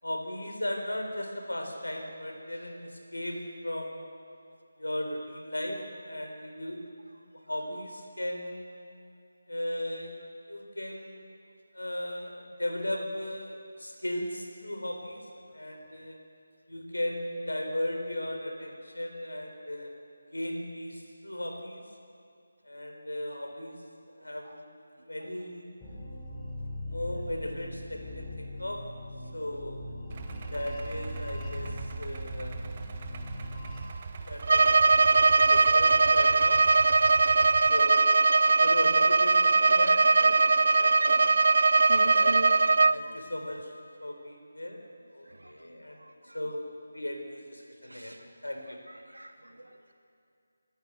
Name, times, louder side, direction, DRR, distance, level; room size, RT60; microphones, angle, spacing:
voice 1, 0.0-4.1 4.8-6.9 7.5-8.7 9.5-10.2 10.5-11.2 11.7-15.3 15.5-16.2 16.7-19.9 20.3-21.8 22.6-23.8 24.1-24.6 25.0-25.7 26.9-28.8 29.3-29.9 30.5-32.6 34.3-36.6 37.2-38.1 38.4-41.2 42.0-42.6 42.9-43.7 44.0-46.6 46.9-48.8, left 1 dB, 80° left, 3 dB, 4.5 m, -37 dB
sound 1, 25.8-33.8, left 1 dB, 10° left, 4.2 m, -40 dB
Idling, 30.1-37.7, right 5 dB, 30° right, 1.4 m, -40 dB
Bowed string instrument, 34.4-43.0, right 3 dB, 55° right, 0.6 m, -21 dB
voice 2, 41.9-42.5 42.8-43.1 45.3-46.4 47.8-48.2 48.9-49.9, right 1 dB, 80° right, 3 dB, 2.9 m, -42 dB
27.5 x 14.0 x 8.1 m, 2.3 s
figure-of-eight pair, 155°, 0 cm